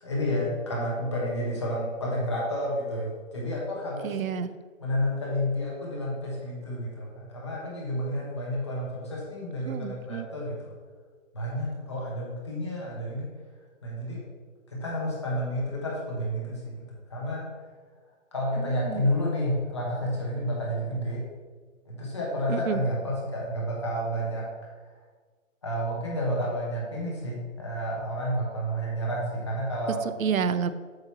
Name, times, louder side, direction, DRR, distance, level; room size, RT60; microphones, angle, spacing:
voice 1, 0.0-4.2 4.8-10.7 11.3-13.3 13.8-14.2 14.7-17.5 18.3-21.2 21.8-24.5 24.8-24.9 25.6-30.0, equal, 20° left, -4 dB, 1.0 m, -30 dB
voice 2, 4.0-4.5 9.7-10.3 18.7-19.1 22.5-22.8 30.2-30.7, right 7 dB, 85° right, 13 dB, 0.6 m, -29 dB
7.7 x 2.9 x 5.6 m, 1.5 s
hypercardioid pair, 180°, 40 cm